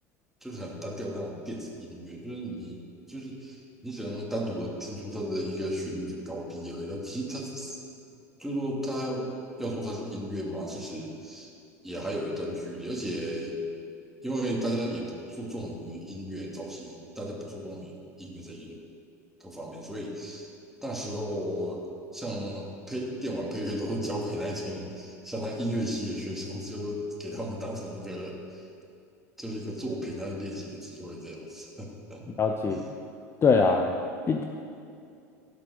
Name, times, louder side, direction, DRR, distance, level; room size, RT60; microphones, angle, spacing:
voice 1, 0.4-2.8 3.1-7.8 8.4-9.3 9.6-11.5 11.8-13.6 14.2-18.8 19.4-20.5 20.8-21.8 22.1-28.6 29.4-32.2 32.7-32.9, equal, 5° right, -3 dB, 2.8 m, -34 dB
voice 2, 32.3-32.8 33.4-33.9 34.3-34.4, left 4 dB, 25° left, 4 dB, 0.8 m, -23 dB
16.5 x 6.0 x 6.5 m, 2.5 s
hypercardioid pair, 85°, 9 cm